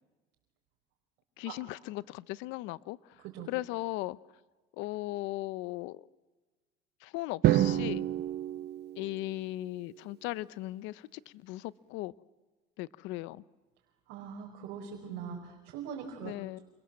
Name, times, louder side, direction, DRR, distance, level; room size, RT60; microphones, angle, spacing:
voice 1, 1.4-4.2 4.7-6.0 7.0-8.0 9.0-12.1 12.8-13.4 16.2-16.6, left 18 dB, 75° left, 0.8 m, -38 dB
Drum, 7.4-9.6, right 13 dB, 60° right, 1.0 m, -28 dB
voice 2, 14.1-16.3, right 7 dB, 75° right, 5.0 m, -41 dB
28.0 x 28.0 x 7.6 m
supercardioid pair, 100°, 19 cm